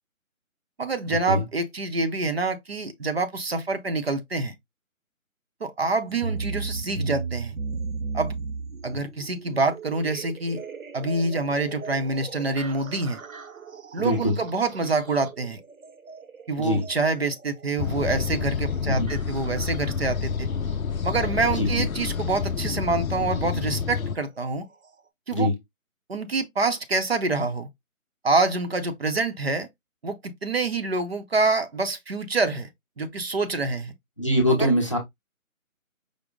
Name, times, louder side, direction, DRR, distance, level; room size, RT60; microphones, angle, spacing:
voice 1, 0.8-4.5 5.6-7.6 8.1-8.3 8.8-10.6 10.9-13.2 13.9-15.6 16.5-20.5 21.0-24.7 25.3-25.5 26.1-27.7 28.2-29.7 30.0-32.7 33.0-33.9 34.5-34.6, right 3 dB, 45° right, 0.7 m, -26 dB
sound 1, 6.1-22.0 23.2-23.3 24.1-24.2 24.8-24.9, right 4 dB, 75° right, 0.9 m, -37 dB
voice 2, 14.0-14.4 16.6-16.9 18.8-19.1 21.5-21.9 25.3-25.5 34.2-35.0, left 1 dB, 25° left, 0.7 m, -23 dB
sound 2, 17.8-24.2, left 6 dB, 85° left, 0.6 m, -29 dB
5.1 x 2.0 x 3.6 m
figure-of-eight pair, 160°, 41 cm